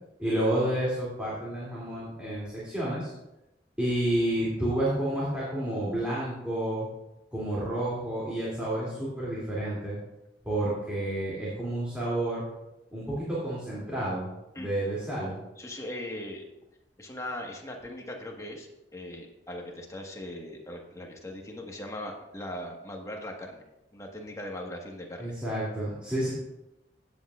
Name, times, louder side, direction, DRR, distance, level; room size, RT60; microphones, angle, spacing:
voice 1, 0.2-3.1 3.8-6.9 7.3-10.0 10.4-12.4 12.9-15.4 25.2-26.3, right 1 dB, 5° right, -8 dB, 2.7 m, -30 dB
voice 2, 15.6-16.4 17.0-23.6 23.9-25.3, left 1 dB, 15° left, 0 dB, 1.5 m, -39 dB
16.0 x 8.3 x 2.5 m, 0.91 s
head